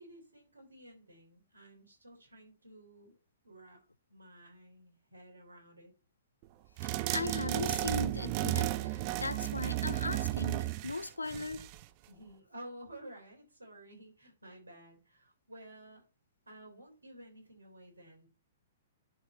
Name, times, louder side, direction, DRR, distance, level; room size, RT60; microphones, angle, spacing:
voice 1, 0.0-3.2 3.4-3.8 4.1-5.9 12.1-16.0 16.5-18.3, right 1 dB, 85° right, 3.7 m, -53 dB
voice 2, 6.8-11.7, left 3 dB, 85° left, 0.4 m, -38 dB
sound 1, 6.8-11.8, right 17 dB, 40° right, 0.6 m, -33 dB
10.5 x 4.3 x 4.3 m
figure-of-eight pair, 115°, 0 cm